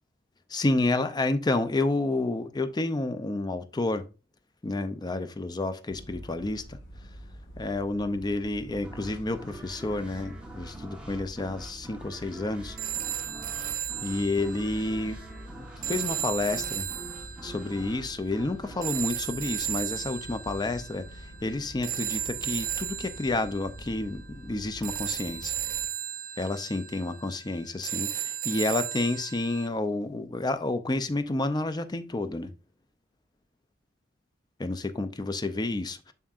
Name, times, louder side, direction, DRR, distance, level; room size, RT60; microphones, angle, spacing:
voice 1, 0.5-4.1 4.6-6.6 7.6-12.8 14.0-15.2 15.6-16.9 17.4-21.1 21.4-25.6 26.4-32.5 34.6-36.1, left 2 dB, 20° left, 0.5 m, -30 dB
sound 1, 5.9-25.8, equal, 65° left, 1.5 m, -46 dB
sound 2, 8.8-20.3, right 1 dB, 5° right, 1.2 m, -46 dB
sound 3, 12.8-29.7, right 11 dB, 45° right, 0.5 m, -35 dB
7.2 x 5.6 x 2.4 m
head